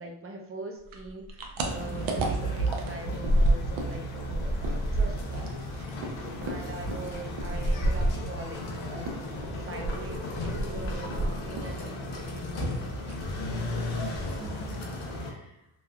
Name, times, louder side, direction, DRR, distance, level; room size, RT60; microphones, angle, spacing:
voice 1, 0.0-5.6 6.4-12.7, right 2 dB, 30° right, 2 dB, 0.4 m, -42 dB
sound 1, 0.9-4.0 4.2-8.7 9.0-11.8 12.0-12.7 13.0-13.3 13.6-13.7 14.0-14.6, right 1 dB, 75° right, 0.6 m, -30 dB
sound 2, 1.6-15.3, left 1 dB, 75° left, 0.7 m, -35 dB
sound 3, 1.7-3.7 4.5-6.5 6.8-6.9, right 4 dB, 90° left, 1.1 m, -34 dB
voice 2, 6.2-6.6 13.5-14.8 15.1-15.7, left 1 dB, 5° right, -7 dB, 0.9 m, -46 dB
3.1 x 2.3 x 2.2 m, 0.80 s
cardioid pair, 120°, 49 cm